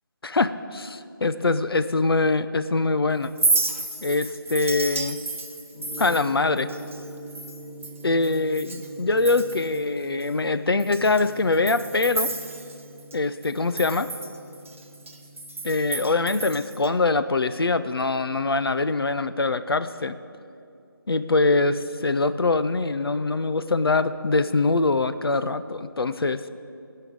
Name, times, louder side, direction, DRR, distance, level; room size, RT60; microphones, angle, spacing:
voice 1, 0.2-3.3 4.0-5.2 6.0-6.7 8.0-12.3 13.1-14.1 15.6-20.2 21.1-26.4, left 3 dB, 85° left, 12 dB, 0.6 m, -23 dB
Chink clink, 3.2-8.9 9.2-9.8 10.2-10.3 10.8-13.2 13.4-16.9, right 3 dB, 35° right, 0.7 m, -31 dB
Gong, 5.7-16.4, right 1 dB, 10° left, 2.6 m, -44 dB
16.0 x 5.6 x 7.6 m, 2.6 s
figure-of-eight pair, 180°, 12 cm